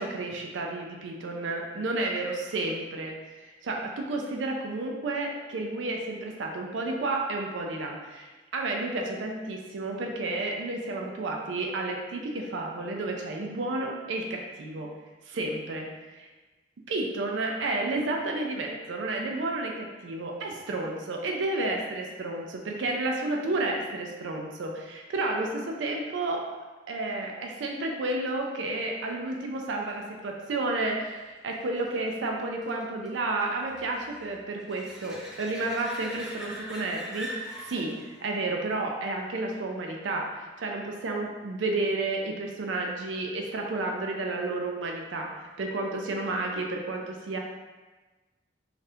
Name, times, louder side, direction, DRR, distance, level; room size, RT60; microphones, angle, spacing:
voice 1, 0.0-14.9 15.2-16.3 16.9-26.5 26.9-45.3 45.6-47.4, right 2 dB, 85° right, 1 dB, 0.4 m, -31 dB
sound 1, 29.0-40.3 46.0-46.1, equal, 5° right, 0.4 m, -45 dB
2.7 x 2.4 x 3.3 m, 1.2 s
head